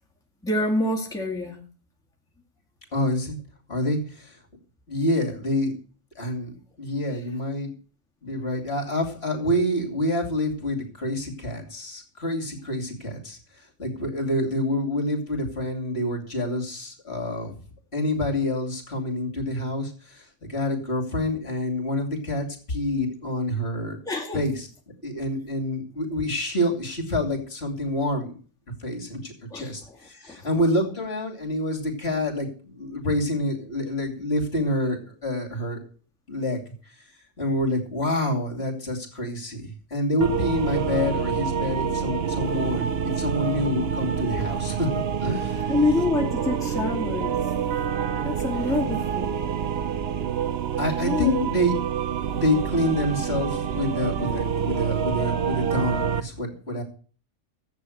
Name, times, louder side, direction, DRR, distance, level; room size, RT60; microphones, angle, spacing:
voice 1, 0.4-1.6 7.1-7.2 24.1-24.4 29.5-30.0 30.2-30.5 43.3-43.5 45.7-47.4 48.2-49.3 51.0-51.3, left 2 dB, ahead, 1.9 m, -26 dB
voice 2, 2.9-3.4 3.7-4.4 4.9-5.7 6.2-7.7 8.2-13.4 13.8-17.5 17.9-24.0 24.3-24.7 25.0-28.3 28.8-35.8 36.3-36.6 37.4-44.9 45.2-45.7 50.8-51.7 52.3-56.8, left 1 dB, 50° left, 3.1 m, -27 dB
sound 1, 40.2-56.2, right 7 dB, 55° right, 0.9 m, -27 dB
14.0 x 8.3 x 6.5 m
omnidirectional pair, 1.4 m